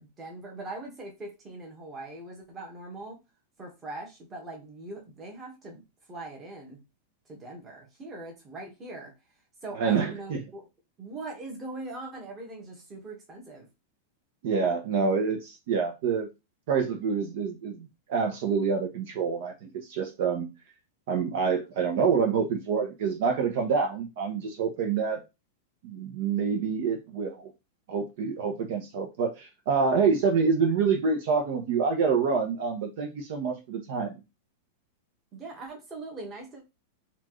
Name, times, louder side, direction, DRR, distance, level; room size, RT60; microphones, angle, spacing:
voice 1, 0.0-3.2 3.6-6.8 7.3-9.1 9.6-10.6 11.0-13.7 35.3-36.6, right 2 dB, 15° right, 1.3 m, -41 dB
voice 2, 9.8-10.4 14.4-16.3 16.7-20.5 21.1-25.2 25.8-27.5 27.9-34.2, right 5 dB, 55° right, 0.8 m, -27 dB
4.3 x 2.4 x 3.1 m
supercardioid pair, 165°, 0 cm